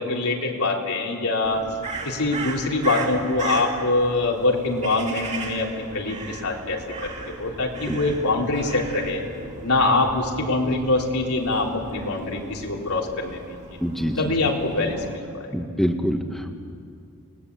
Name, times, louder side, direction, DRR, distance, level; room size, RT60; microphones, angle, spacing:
voice 1, 0.0-1.6 2.0-9.2 9.6-13.6 14.2-15.5, left 2 dB, 85° left, -1 dB, 4.0 m, -24 dB
Crow, 1.4-15.2, right 3 dB, 30° right, 3.2 m, -37 dB
voice 2, 13.8-14.3 15.5-16.5, equal, ahead, 4 dB, 1.8 m, -25 dB
30.0 x 20.5 x 8.6 m, 2.4 s
head